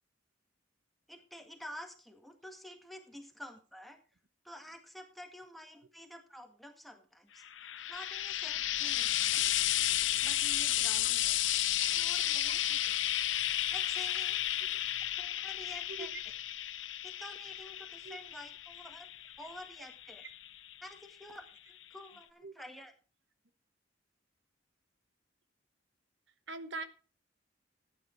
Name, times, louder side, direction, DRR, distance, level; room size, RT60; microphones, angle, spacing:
voice 1, 1.1-4.0 4.4-7.4 7.9-9.5 10.2-11.5 11.8-13.3 13.7-14.4 15.2-16.1 17.0-19.1 19.4-20.2 20.8-22.9, left 1 dB, ahead, 1.8 m, -50 dB
Frying (food), 7.4-20.9 21.8-21.9, left 13 dB, 80° left, 0.8 m, -33 dB
voice 2, 26.5-26.8, right 3 dB, 70° right, 1.1 m, -41 dB
14.0 x 9.5 x 4.5 m
head